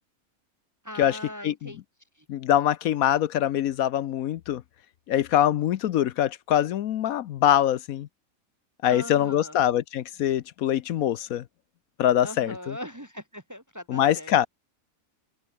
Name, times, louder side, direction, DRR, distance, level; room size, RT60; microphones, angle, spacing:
voice 1, 0.8-1.8 2.2-2.3 8.8-9.6 12.2-14.3, equal, 15° right, 1.2 m, -40 dB
voice 2, 2.3-4.6 5.1-8.1 8.8-11.4 12.0-12.8 13.9-14.5, left 11 dB, 75° left, 1.1 m, -24 dB
omnidirectional pair, 1.5 m